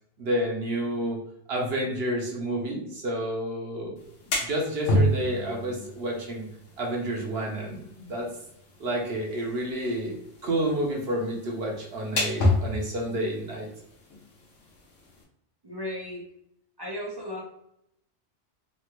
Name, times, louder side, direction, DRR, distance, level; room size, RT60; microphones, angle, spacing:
voice 1, 0.2-1.2 1.5-3.9 4.4-6.5 6.8-8.3 8.8-10.1 10.4-13.7, right 1 dB, 60° right, -1 dB, 1.0 m, -29 dB
sound 1, 4.0-15.2, left 1 dB, 80° left, 1.1 m, -31 dB
voice 2, 15.6-16.2 16.8-17.4, left 1 dB, 35° right, -3 dB, 0.4 m, -35 dB
3.3 x 2.3 x 3.0 m, 0.76 s
omnidirectional pair, 1.2 m